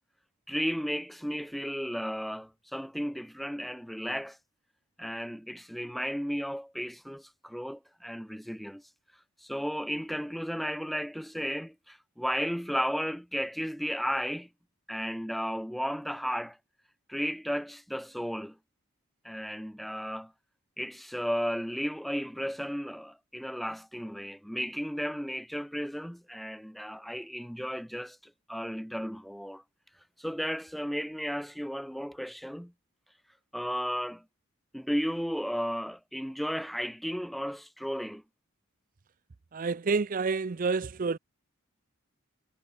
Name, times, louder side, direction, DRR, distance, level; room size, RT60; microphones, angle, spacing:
voice 1, 0.5-4.4 5.0-8.8 9.4-14.5 14.9-16.6 17.1-18.6 19.2-20.3 20.8-29.6 30.2-32.7 33.5-34.2 34.7-38.2, equal, ahead, 1.5 m, -34 dB
voice 2, 39.5-41.2, right 4 dB, 40° right, 0.5 m, -29 dB
head